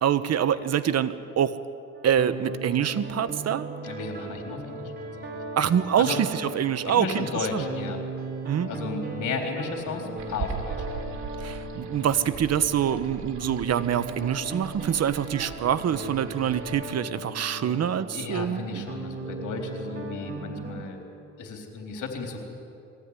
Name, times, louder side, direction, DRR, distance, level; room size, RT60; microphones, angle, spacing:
voice 1, 0.0-1.6 2.0-3.7 5.6-7.6 8.4-8.7 11.4-18.9, right 9 dB, 55° right, 12 dB, 1.1 m, -25 dB
sound 1, 1.9-20.9, right 2 dB, 35° right, 3.4 m, -38 dB
voice 2, 3.8-4.9 5.3-5.4 6.0-6.2 6.8-8.0 8.7-10.9 17.5-17.7 18.1-21.0 21.4-22.4, left 4 dB, 75° left, 2 dB, 3.9 m, -34 dB
sound 2, 10.2-16.8, right 6 dB, 75° right, 3.0 m, -40 dB
22.0 x 16.0 x 9.8 m, 2.6 s
cardioid pair, 90°, 30 cm